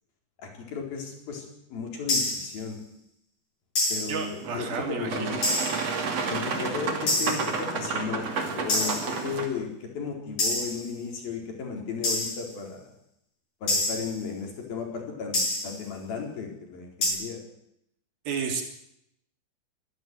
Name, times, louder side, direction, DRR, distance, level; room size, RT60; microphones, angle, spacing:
voice 1, 0.4-1.5 1.7-2.8 3.9-4.7 5.0-5.4 6.3-12.9 13.6-17.4, left 5 dB, 70° left, 2 dB, 6.0 m, -35 dB
sound 1, 2.1-2.6 3.8-4.3 5.4-5.9 7.1-7.6 8.7-9.2 10.4-10.9 12.0-12.5 13.7-14.2 15.3-15.8 17.0-17.1, left 1 dB, 45° left, 8.1 m, -27 dB
voice 2, 4.1-5.4 18.3-18.6, right 5 dB, 70° right, 4 dB, 4.8 m, -31 dB
Boat Water vehicle, 4.4-9.5, right 4 dB, 45° right, 3.4 m, -31 dB
24.0 x 13.0 x 9.5 m, 0.77 s
omnidirectional pair, 4.4 m